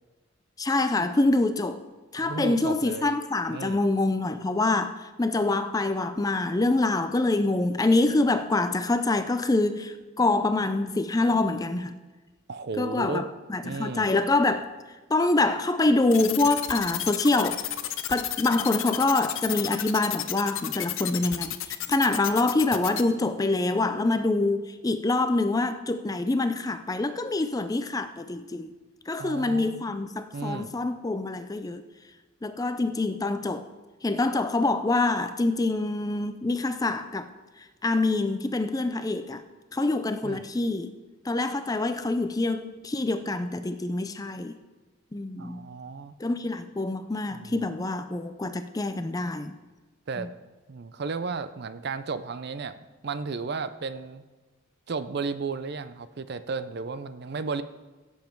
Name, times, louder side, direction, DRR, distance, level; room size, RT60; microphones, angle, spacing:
voice 1, 0.6-1.8 2.1-12.0 12.8-14.7 15.1-17.7 18.1-28.7 29.1-31.8 32.4-33.7 34.0-37.3 37.8-39.4 39.7-40.9 41.2-44.6 45.1-45.6 46.2-49.6 50.2-50.3, left 2 dB, 15° left, 10 dB, 0.4 m, -25 dB
voice 2, 2.2-3.2 3.5-3.8 12.5-13.2 13.6-14.1 29.2-29.8 30.3-30.7 40.2-40.5 45.4-46.1 47.3-47.7 50.1-50.3 50.7-52.7 53.0-54.2 54.9-57.6, right 4 dB, 50° right, 12 dB, 0.5 m, -34 dB
sound 1, 16.1-23.0, left 13 dB, 60° left, 0.6 m, -31 dB
16.0 x 7.3 x 4.6 m, 1.3 s
head